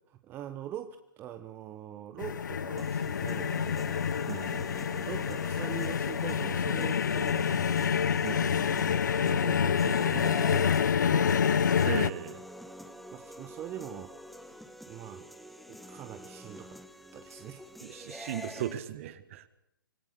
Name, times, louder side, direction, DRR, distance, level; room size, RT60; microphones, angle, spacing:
voice 1, 0.1-4.0 4.9-11.5 13.1-15.3 15.7-16.8 17.1-17.8, right 10 dB, 20° right, 9 dB, 1.0 m, -43 dB
sound 1, 2.2-12.1, left 7 dB, 60° left, 0.8 m, -27 dB
sound 2, 2.8-18.8, equal, ahead, 1.0 m, -47 dB
voice 2, 4.3-4.6 8.2-8.6 11.8-12.4 17.8-19.5, right 11 dB, 40° right, 14 dB, 1.6 m, -37 dB
25.5 x 18.0 x 6.6 m, 0.78 s
figure-of-eight pair, 125°, 11 cm